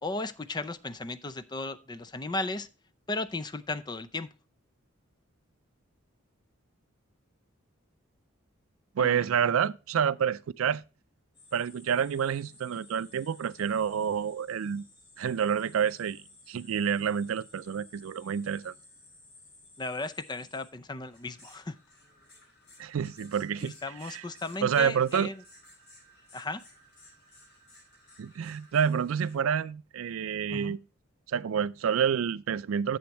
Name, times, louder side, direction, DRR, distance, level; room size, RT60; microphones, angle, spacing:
voice 1, 0.0-2.7 3.1-4.3 9.0-9.2 19.8-21.8 23.6-25.4 26.3-26.6 30.5-30.8, left 2 dB, 20° left, 0.5 m, -35 dB
voice 2, 9.0-10.8 11.5-14.8 15.2-16.2 16.5-18.7 22.8-23.7 24.0-24.2 24.6-25.3 28.2-30.8 31.3-33.0, right 7 dB, 90° right, 0.4 m, -28 dB
sound 1, 11.3-29.4, left 1 dB, 55° left, 5.6 m, -56 dB
10.5 x 7.8 x 3.0 m
head